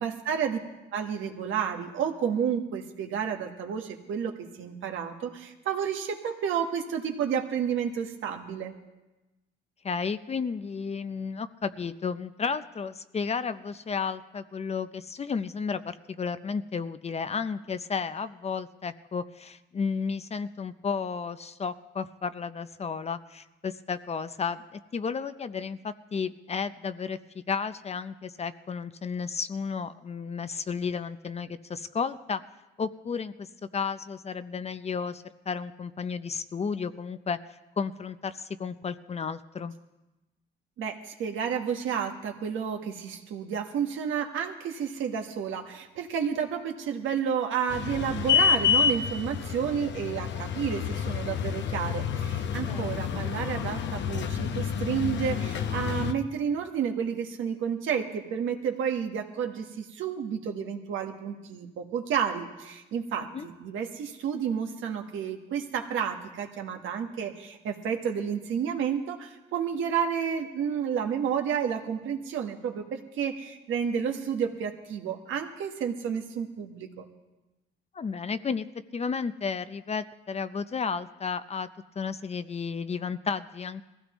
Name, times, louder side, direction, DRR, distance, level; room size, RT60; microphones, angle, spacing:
voice 1, 0.0-0.6 0.9-4.3 4.6-8.7 40.8-77.1, right 7 dB, 80° right, 3 dB, 1.4 m, -31 dB
voice 2, 9.8-32.4 32.8-33.5 33.7-37.4 37.8-39.7 52.7-52.8 53.1-53.2 63.3-63.5 77.9-78.7 78.9-81.7 82.0-83.8, left 5 dB, 30° left, 12 dB, 0.6 m, -33 dB
sound 1, 47.7-56.1, left 8 dB, 65° left, 0.8 m, -28 dB
21.0 x 15.5 x 3.1 m, 1.0 s
cardioid pair, 90°, 20 cm